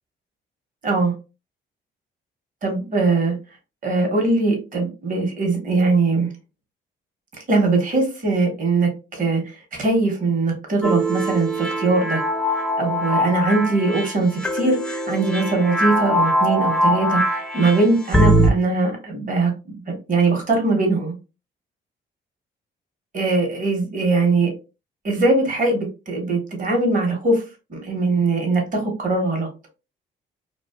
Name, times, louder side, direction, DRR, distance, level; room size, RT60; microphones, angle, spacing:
voice 1, 2.6-3.3 3.8-6.3 7.5-12.2 12.8-19.5 19.9-21.2 23.1-24.5 25.0-27.4 27.7-29.5, right 3 dB, 40° right, 1 dB, 1.0 m, -21 dB
sound 1, 10.8-18.5, equal, 5° left, 0.4 m, -22 dB
2.4 x 2.3 x 2.3 m, 0.30 s
cardioid pair, 90°, 20 cm